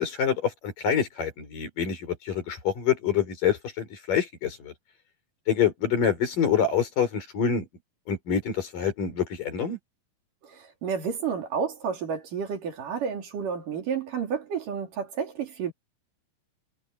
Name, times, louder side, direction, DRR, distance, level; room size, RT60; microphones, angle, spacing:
voice 1, 0.0-4.7 5.5-7.7 8.1-9.8, left 7 dB, 70° left, 6.3 m, -26 dB
voice 2, 10.4-15.7, right 6 dB, 70° right, 4.6 m, -31 dB
omnidirectional pair, 4.0 m